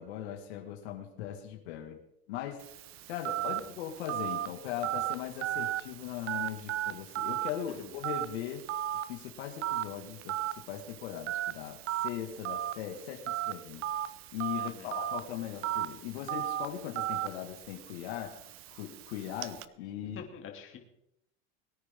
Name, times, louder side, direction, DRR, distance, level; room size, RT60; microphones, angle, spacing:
voice 1, 0.0-2.0 2.3-2.6 3.1-8.6 8.9-13.8 14.3-18.3 18.7-20.2, left 10 dB, 80° left, 2 dB, 2.2 m, -39 dB
Telephone, 2.6-19.6, right 13 dB, 40° right, 0.8 m, -36 dB
voice 2, 14.6-15.0 20.0-20.8, left 7 dB, 40° left, 2 dB, 2.9 m, -47 dB
22.5 x 9.8 x 3.8 m, 0.79 s
supercardioid pair, 120°, 33 cm